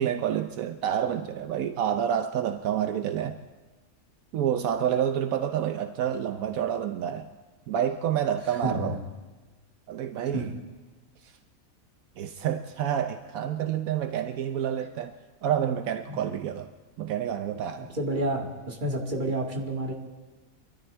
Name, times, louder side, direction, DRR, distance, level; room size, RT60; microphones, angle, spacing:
voice 1, 0.0-3.4 4.3-7.3 7.7-9.0 9.9-10.5 11.2-11.3 12.2-15.1 15.4-16.7 17.0-17.9, right 9 dB, 80° right, 7 dB, 1.1 m, -28 dB
voice 2, 8.5-9.0 10.3-10.5 16.1-16.2 17.8-19.9, right 1 dB, 35° right, 0 dB, 2.1 m, -30 dB
25.5 x 13.0 x 3.5 m, 1.3 s
omnidirectional pair, 1.5 m